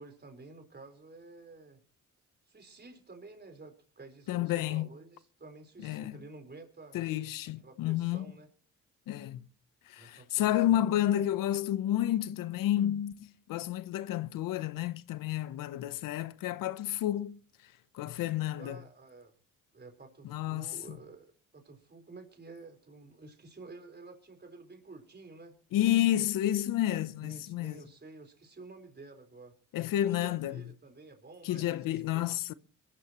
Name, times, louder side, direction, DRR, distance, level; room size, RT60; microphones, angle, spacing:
voice 1, 0.0-1.8 2.5-7.0 7.6-8.5 10.0-11.1 18.6-19.3 19.7-25.6 27.2-29.5 30.1-32.2, right 3 dB, 30° right, 4.3 m, -51 dB
voice 2, 4.3-4.9 5.8-6.2 6.9-8.3 9.1-9.4 9.9-17.4 17.9-18.8 20.2-21.0 25.7-27.8 29.7-30.6 31.4-32.5, left 12 dB, 90° left, 0.8 m, -30 dB
22.5 x 14.0 x 3.0 m
cardioid pair, 80°, 32 cm